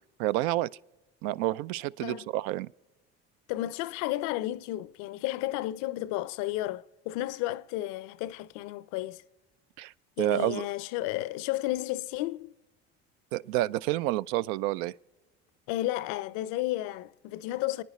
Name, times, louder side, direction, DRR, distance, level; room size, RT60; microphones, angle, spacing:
voice 1, 0.2-0.7 1.2-2.7 9.8-9.9 10.2-10.6 13.3-14.9, right 16 dB, 70° right, 0.5 m, -29 dB
voice 2, 3.5-9.2 10.2-12.5 15.7-17.8, left 16 dB, 70° left, 0.6 m, -32 dB
28.0 x 9.5 x 4.2 m
hypercardioid pair, 80°, 32 cm